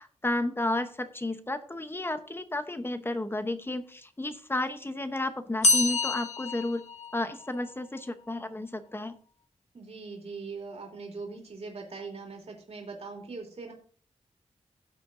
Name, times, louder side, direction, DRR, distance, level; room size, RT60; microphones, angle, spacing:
voice 1, 0.0-6.8 7.1-9.1, left 1 dB, 20° left, 9 dB, 0.8 m, -32 dB
sound 1, 5.6-7.6, left 2 dB, 65° left, 1.4 m, -27 dB
voice 2, 9.7-13.7, right 4 dB, 55° right, 0 dB, 3.0 m, -41 dB
16.5 x 7.8 x 2.6 m, 0.42 s
wide cardioid pair, 145°, 12 cm